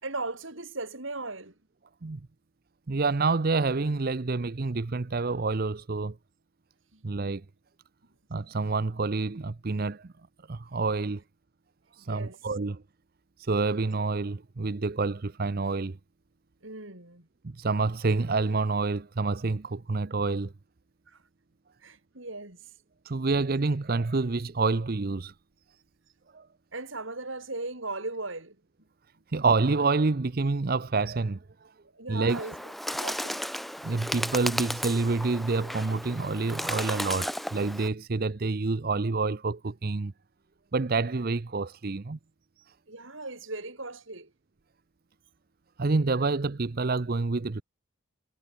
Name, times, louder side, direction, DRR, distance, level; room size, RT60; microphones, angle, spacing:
voice 1, 0.0-1.5 6.9-7.0 12.0-12.4 16.6-17.3 21.1-21.2 21.8-22.6 26.7-28.6 31.9-32.6 32.9-33.4 42.9-44.3, right 2 dB, 65° right, 4.6 m, -37 dB
voice 2, 2.9-6.2 7.0-7.4 8.3-10.1 10.5-11.2 11.9-12.8 13.4-16.0 17.4-20.5 23.0-25.3 26.3-26.5 29.3-31.4 32.1-32.4 33.8-40.1 40.7-42.2 45.8-47.6, right 3 dB, 45° right, 0.6 m, -28 dB
Bird, 32.3-37.9, equal, ahead, 2.7 m, -34 dB
head